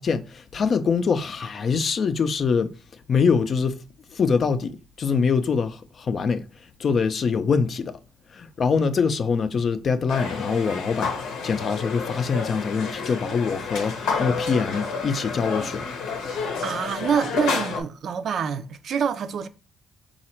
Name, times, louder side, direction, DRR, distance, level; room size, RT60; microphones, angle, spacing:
voice 1, 0.0-2.7 3.1-3.8 4.1-6.4 6.8-8.0 8.3-15.9, left 5 dB, 50° left, 0.5 m, -24 dB
sound 1, 10.1-17.8, left 4 dB, 90° left, 0.8 m, -30 dB
voice 2, 16.6-19.5, right 7 dB, 60° right, 0.4 m, -26 dB
4.1 x 2.4 x 4.3 m
cardioid pair, 90°, 0 cm